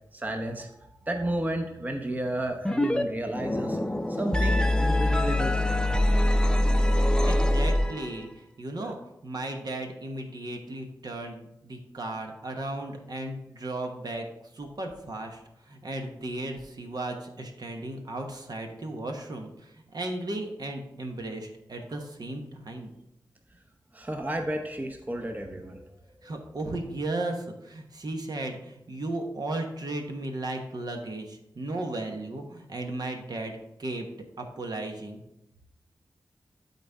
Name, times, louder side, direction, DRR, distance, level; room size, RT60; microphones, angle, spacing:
voice 1, 0.1-0.7 1.0-3.8 4.1-6.5 7.0-7.3 8.8-8.9 21.9-22.0 23.9-25.9 26.2-26.3, right 1 dB, 20° right, 4 dB, 0.8 m, -33 dB
sound 1, 2.6-3.0 3.3-8.3, left 1 dB, 10° left, 0.6 m, -24 dB
voice 2, 7.2-8.3 8.6-9.0 9.2-14.3 14.5-15.4 15.7-22.9 26.2-34.1 34.4-35.2, right 2 dB, 60° right, 3 dB, 1.1 m, -35 dB
12.0 x 4.2 x 3.5 m, 0.84 s
wide cardioid pair, 70°, 8 cm